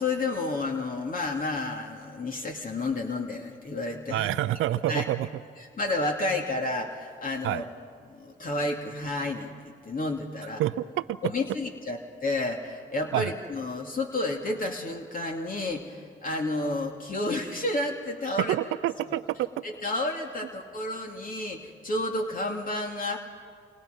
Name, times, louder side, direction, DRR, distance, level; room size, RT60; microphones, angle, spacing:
voice 1, 0.0-4.4 4.9-5.0 5.8-7.6 8.0-10.6 11.2-18.5 19.1-19.2 19.6-23.2, left 2 dB, 45° left, 2 dB, 2.7 m, -31 dB
voice 2, 4.1-5.3 7.4-7.6 10.6-11.3 13.1-13.3 18.4-19.6, right 14 dB, 80° right, 13 dB, 0.6 m, -28 dB
29.0 x 26.5 x 5.4 m, 2.1 s
supercardioid pair, 60°, 21 cm